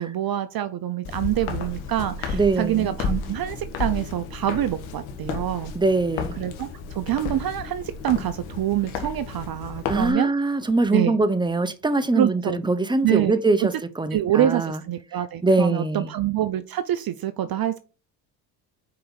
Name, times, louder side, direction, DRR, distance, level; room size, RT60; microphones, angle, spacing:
voice 1, 0.0-5.7 6.4-10.3 10.9-11.2 12.1-12.6 13.0-13.7 14.1-17.8, right 12 dB, 45° right, 0.8 m, -26 dB
Walk footsteps, 1.0-10.1, left 5 dB, 75° left, 1.7 m, -32 dB
voice 2, 2.3-2.9 5.7-6.3 9.9-14.8 15.4-16.1, right 3 dB, 10° right, 1.1 m, -22 dB
5.8 x 4.9 x 5.8 m
hypercardioid pair, 60°, 49 cm